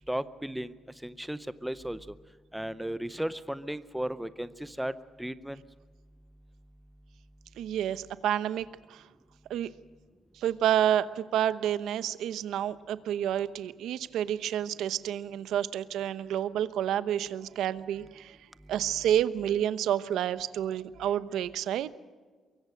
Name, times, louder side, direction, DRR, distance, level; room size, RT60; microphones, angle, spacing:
voice 1, 0.1-0.8 1.0-2.1 2.5-4.9 5.2-5.6, right 1 dB, 5° right, 13 dB, 0.6 m, -35 dB
voice 2, 7.6-9.0 9.5-9.7 10.4-18.4 18.7-22.0, right 10 dB, 80° right, 14 dB, 0.9 m, -29 dB
23.5 x 23.0 x 6.4 m, 1.5 s
cardioid pair, 180°, 0 cm